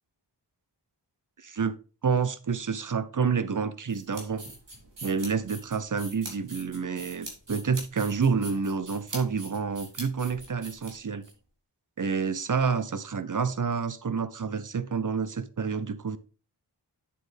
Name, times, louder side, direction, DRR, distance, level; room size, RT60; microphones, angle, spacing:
voice 1, 1.4-1.7 2.0-4.4 5.0-11.3 12.0-16.2, right 5 dB, 45° right, 0.8 m, -28 dB
sound 1, 3.9-11.3, right 2 dB, 90° right, 3.5 m, -43 dB
8.7 x 7.6 x 3.4 m
wide cardioid pair, 90°, 42 cm